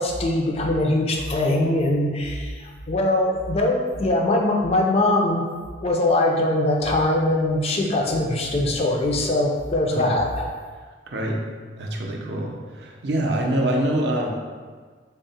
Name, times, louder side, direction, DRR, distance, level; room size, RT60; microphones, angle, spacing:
voice 1, 0.0-5.5 5.8-10.5, left 1 dB, 35° left, 0 dB, 0.4 m, -22 dB
voice 2, 11.1-11.4 11.8-14.3, right 1 dB, 70° right, 0 dB, 0.5 m, -25 dB
3.6 x 2.1 x 4.0 m, 1.5 s
head